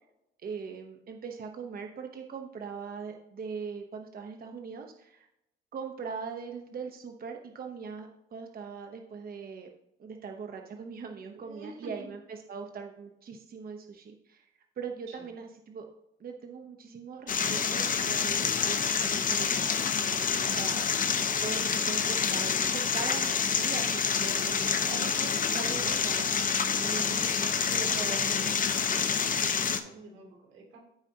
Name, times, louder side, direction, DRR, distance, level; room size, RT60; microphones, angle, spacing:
voice 1, 0.4-5.3 5.7-9.7 10.0-14.5 14.8-15.9 16.2-20.8 21.4-26.3 26.7-29.1, right 5 dB, 50° right, 4 dB, 0.9 m, -41 dB
voice 2, 11.3-12.1 15.1-15.3 26.7-27.3 29.4-30.8, right 2 dB, 90° right, -2 dB, 2.9 m, -48 dB
sound 1, 17.3-29.8, left 6 dB, 45° left, 0.9 m, -28 dB
15.0 x 4.9 x 2.8 m, 0.84 s
cardioid pair, 90°, 20 cm